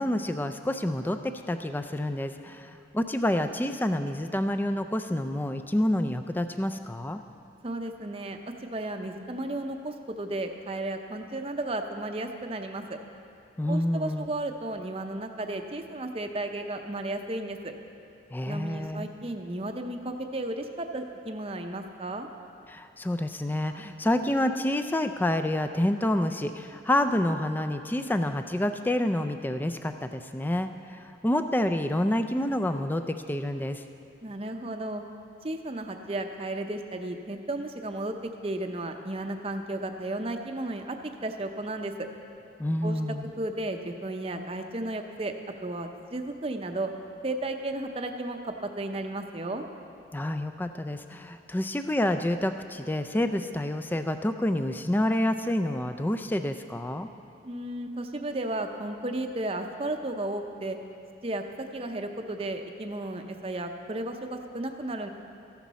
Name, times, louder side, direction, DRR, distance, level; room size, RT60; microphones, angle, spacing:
voice 1, 0.0-7.2 13.6-14.3 18.3-19.1 22.7-33.8 42.6-43.3 50.1-57.1, left 1 dB, 10° left, 8 dB, 0.3 m, -28 dB
voice 2, 7.6-13.0 13.7-17.7 18.5-22.3 34.2-35.0 35.4-42.1 42.8-43.0 43.4-45.3 45.6-46.9 47.2-49.6 57.4-60.8 61.2-65.1, right 2 dB, 30° right, 5 dB, 0.6 m, -34 dB
14.5 x 11.5 x 4.1 m, 2.5 s
head